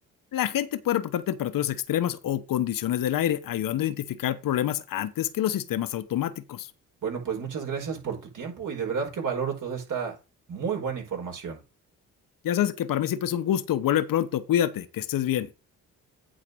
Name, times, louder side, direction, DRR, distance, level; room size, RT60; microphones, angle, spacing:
voice 1, 0.3-6.7 12.4-15.5, left 11 dB, 65° left, 1.1 m, -27 dB
voice 2, 7.0-10.1 10.5-11.6, right 6 dB, 60° right, 5.0 m, -31 dB
8.9 x 4.2 x 6.7 m
supercardioid pair, 55°, 36 cm